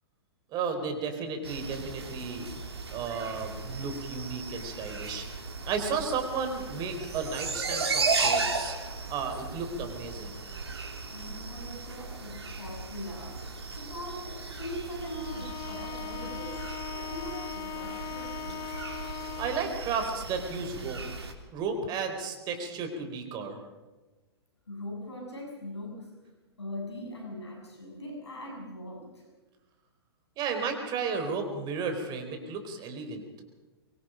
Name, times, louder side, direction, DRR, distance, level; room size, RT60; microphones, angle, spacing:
voice 1, 0.5-2.5 2.9-8.8 9.1-10.4 19.4-21.0 21.5-23.6 30.4-33.3, right 5 dB, 30° right, 6 dB, 4.3 m, -33 dB
sound 1, 1.4-21.3, right 4 dB, 75° right, 3.4 m, -36 dB
voice 2, 11.0-13.4 13.8-18.7 24.7-26.2 26.6-29.2, left 1 dB, 85° left, 0 dB, 7.4 m, -41 dB
Bowed string instrument, 15.0-19.9, left 8 dB, 25° left, 1.7 m, -39 dB
24.0 x 23.0 x 5.2 m, 1.2 s
figure-of-eight pair, 115°, 14 cm